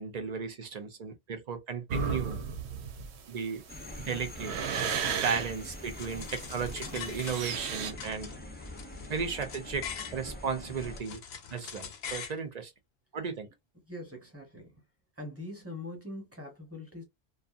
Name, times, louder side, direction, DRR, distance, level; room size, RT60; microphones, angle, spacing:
voice 1, 0.0-2.4 3.3-3.6 4.1-4.5 5.2-8.3 9.1-11.2 11.5-12.7 13.1-13.5, right 5 dB, 50° right, 0.5 m, -35 dB
sound 1, 1.9-7.9, right 6 dB, 90° right, 0.9 m, -34 dB
sound 2, 3.7-11.0, left 1 dB, 15° left, 0.5 m, -44 dB
sound 3, 6.0-7.7 8.0-10.2 10.6-12.4, left 7 dB, 80° left, 0.9 m, -42 dB
voice 2, 13.8-14.8 15.2-17.0, left 1 dB, 15° right, 1.0 m, -43 dB
2.6 x 2.3 x 2.4 m
omnidirectional pair, 1.1 m